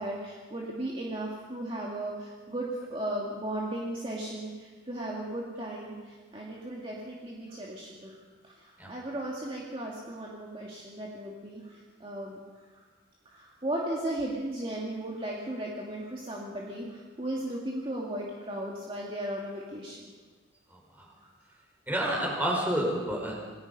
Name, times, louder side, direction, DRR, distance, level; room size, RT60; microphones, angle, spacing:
voice 1, 0.0-8.2 8.4-12.4 12.7-12.8 13.3-20.0 21.2-21.3, right 1 dB, 25° right, -3 dB, 2.3 m, -36 dB
voice 2, 20.7-21.1 21.9-23.4, right 1 dB, 10° right, -2 dB, 5.0 m, -30 dB
28.0 x 18.5 x 5.6 m, 1.4 s
head